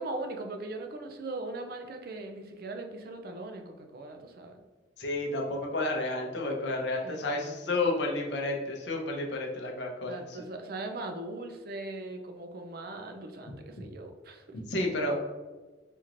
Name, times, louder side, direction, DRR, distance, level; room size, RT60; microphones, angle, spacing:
voice 1, 0.0-4.6 7.0-7.6 10.1-14.4, right 2 dB, 50° right, 4 dB, 0.5 m, -39 dB
voice 2, 5.0-10.4 14.7-15.1, left 2 dB, 65° left, 0 dB, 0.7 m, -31 dB
4.3 x 3.0 x 2.5 m, 1.2 s
head